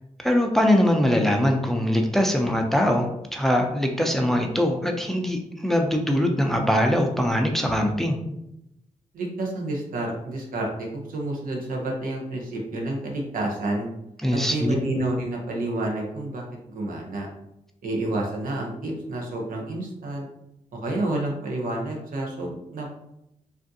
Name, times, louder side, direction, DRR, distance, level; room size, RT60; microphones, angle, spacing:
voice 1, 0.2-8.2 14.2-14.9, equal, ahead, 3 dB, 0.5 m, -22 dB
voice 2, 9.1-13.9 14.3-17.3 17.8-20.3 20.7-22.9, right 2 dB, 85° right, 0 dB, 0.8 m, -29 dB
3.5 x 2.5 x 2.6 m, 0.83 s
cardioid pair, 70°, 14 cm